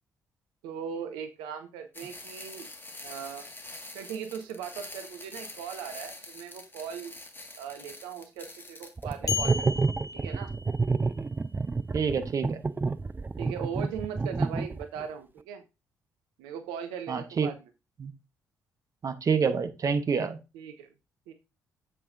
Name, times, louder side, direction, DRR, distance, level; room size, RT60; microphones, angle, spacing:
voice 1, 0.6-2.7 3.0-3.5 3.9-7.1 7.6-9.9 10.1-10.5 13.4-15.6 16.4-17.5 20.5-20.9 21.3-21.4, right 8 dB, 75° right, 7 dB, 0.9 m, -39 dB
sound 1, 1.9-9.1, left 2 dB, 25° left, 1.9 m, -45 dB
sound 2, 9.0-15.1, right 4 dB, 25° right, 0.6 m, -29 dB
sound 3, 9.3-11.1, left 6 dB, 45° left, 0.8 m, -34 dB
voice 2, 11.9-12.6 17.1-17.5 18.0-18.1 19.0-20.4, right 6 dB, 45° right, 8 dB, 1.1 m, -27 dB
7.8 x 7.7 x 2.7 m, 0.27 s
figure-of-eight pair, 40°, 8 cm